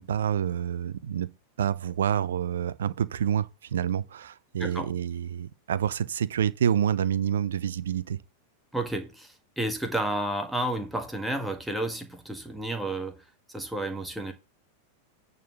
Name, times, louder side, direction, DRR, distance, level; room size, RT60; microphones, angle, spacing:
voice 1, 0.0-1.3 1.6-8.2, right 9 dB, 65° right, 0.6 m, -28 dB
voice 2, 8.7-13.2 13.5-14.3, right 1 dB, ahead, 1.8 m, -31 dB
9.2 x 4.0 x 6.7 m
figure-of-eight pair, 90°, 0 cm